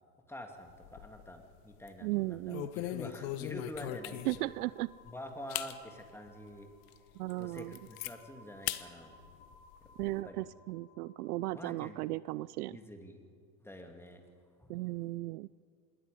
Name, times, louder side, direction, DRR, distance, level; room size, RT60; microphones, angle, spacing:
voice 1, 0.3-4.5 5.0-6.7 7.4-9.1 10.3-10.5 11.5-12.0 12.7-13.2 13.6-14.2 14.6-14.9, left 1 dB, 5° left, 4 dB, 2.1 m, -47 dB
sound 1, 0.7-1.4 1.7-2.0 2.5-4.6 5.0-5.1 5.5-5.7 6.3-6.4 6.9-7.0 7.3-8.1 8.7-8.8 9.2-10.1, left 14 dB, 55° left, 1.3 m, -39 dB
voice 2, 2.0-2.7 4.3-4.9 7.2-7.7 10.0-12.7 14.7-15.5, right 19 dB, 65° right, 20 dB, 0.5 m, -36 dB
sound 2, 3.9-12.4, left 2 dB, 80° left, 3.8 m, -61 dB
26.5 x 20.5 x 5.2 m, 2.3 s
hypercardioid pair, 115°, 50 cm